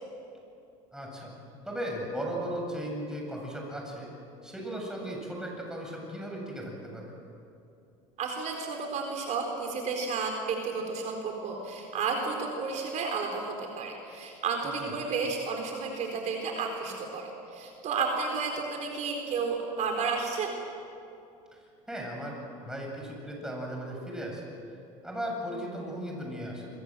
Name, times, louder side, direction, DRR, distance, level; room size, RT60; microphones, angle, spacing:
voice 1, 0.9-1.3 1.6-4.1 4.4-7.1 14.8-14.9 21.5-21.6 21.9-22.4 22.6-24.5 25.0-26.7, equal, 5° right, -1 dB, 8.0 m, -36 dB
voice 2, 8.2-20.5, right 4 dB, 50° right, 2 dB, 4.3 m, -32 dB
28.0 x 23.0 x 7.8 m, 2.6 s
supercardioid pair, 115°, 16 cm